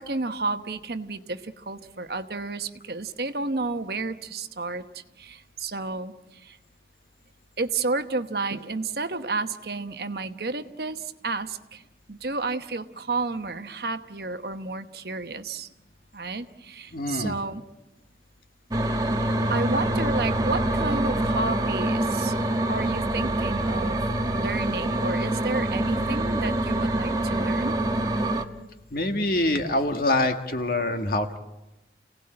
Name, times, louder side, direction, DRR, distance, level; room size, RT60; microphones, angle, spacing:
voice 1, 0.0-6.6 7.6-11.8 12.1-15.7 16.1-17.6 19.5-24.0 24.3-27.8, right 3 dB, 60° right, 9 dB, 1.1 m, -31 dB
voice 2, 16.9-17.4 28.9-31.4, left 2 dB, 55° left, 6 dB, 1.8 m, -25 dB
sound 1, 18.7-28.4, right 1 dB, 20° right, 1.2 m, -25 dB
29.5 x 18.0 x 8.8 m, 1.0 s
head